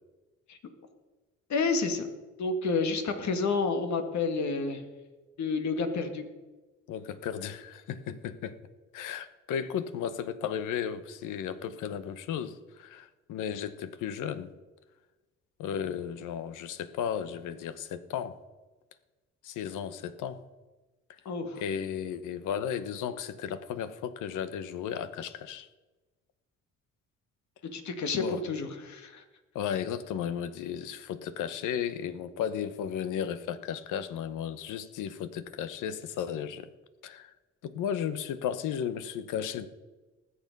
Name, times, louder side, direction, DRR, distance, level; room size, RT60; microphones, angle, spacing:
voice 1, 1.5-2.1 2.4-4.8 5.4-6.3 21.3-21.6 27.7-29.2, left 4 dB, 65° left, 7 dB, 1.9 m, -30 dB
voice 2, 6.9-8.6 8.9-14.5 15.6-18.4 19.4-20.4 21.6-25.7 28.1-28.4 29.5-36.7 37.0-37.3 37.6-39.7, left 8 dB, 85° left, 13 dB, 1.0 m, -34 dB
19.5 x 7.1 x 5.3 m, 1.2 s
cardioid pair, 90°, 30 cm